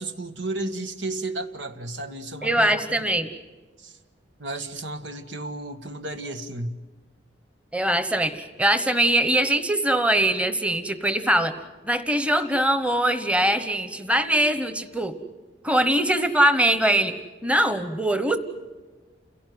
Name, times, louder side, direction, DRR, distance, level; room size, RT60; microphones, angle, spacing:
voice 1, 0.0-3.0 3.8-4.0 4.4-6.8, right 2 dB, 85° right, 9 dB, 1.7 m, -33 dB
voice 2, 2.4-3.3 7.7-11.5 11.8-15.2 15.6-17.1 17.4-18.4, right 1 dB, 5° right, 10 dB, 1.1 m, -22 dB
29.5 x 17.5 x 9.4 m, 1.3 s
head